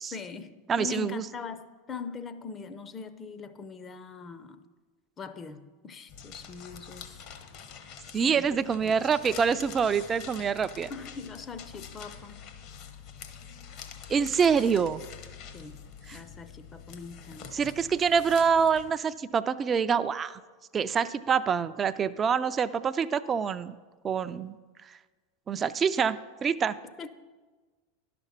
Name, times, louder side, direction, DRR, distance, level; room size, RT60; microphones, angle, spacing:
voice 1, 0.0-4.6 5.2-7.2 8.3-9.0 10.9-12.4 15.5-15.8 16.1-17.5 27.0-27.1, left 5 dB, 25° left, 11 dB, 0.6 m, -41 dB
voice 2, 0.7-1.2 8.1-10.9 14.1-15.0 16.1-16.2 17.5-20.4 20.7-23.8 24.0-24.6 25.5-26.8, right 6 dB, 25° right, 13 dB, 0.4 m, -26 dB
sound 1, 6.1-18.9, left 7 dB, 50° left, 1.0 m, -46 dB
11.0 x 6.0 x 5.7 m, 1.3 s
figure-of-eight pair, 85°, 0 cm